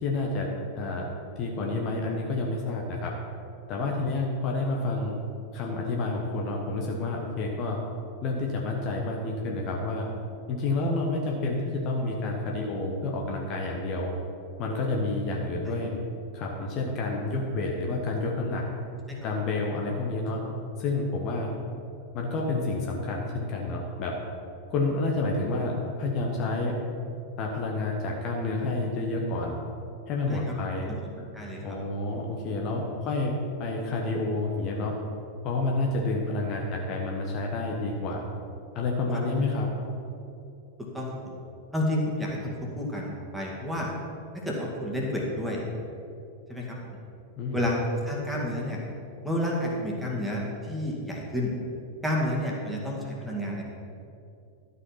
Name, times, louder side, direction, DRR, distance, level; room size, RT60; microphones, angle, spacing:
voice 1, 0.0-1.1 1.4-3.1 3.7-5.1 5.5-7.8 8.2-10.1 10.5-14.1 14.6-15.9 16.3-18.6 19.2-20.4 20.8-21.5 22.1-24.2 24.7-26.8 27.4-29.6 30.1-30.9 31.6-33.3 33.6-34.9 35.4-38.2 38.7-39.7 47.4-47.6, left 2 dB, 40° left, 0 dB, 1.2 m, -29 dB
voice 2, 30.8-31.8 32.7-32.8 40.9-41.4 41.7-43.9 44.5-45.6 46.5-46.8 47.5-48.8 49.2-51.5 52.0-53.7, left 1 dB, ahead, -3 dB, 2.1 m, -30 dB
12.0 x 5.7 x 5.7 m, 2.6 s
figure-of-eight pair, 90°, 0 cm